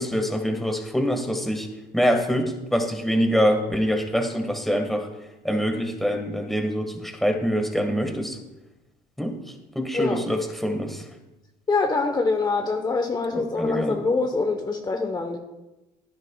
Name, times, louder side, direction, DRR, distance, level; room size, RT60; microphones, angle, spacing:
voice 1, 0.0-1.7 1.9-5.1 5.4-8.4 9.2-11.0 13.3-14.1, equal, ahead, 4 dB, 1.7 m, -25 dB
voice 2, 11.7-15.4, left 3 dB, 25° left, 3 dB, 1.0 m, -24 dB
16.0 x 9.6 x 2.4 m, 0.99 s
cardioid pair, 110°, 17 cm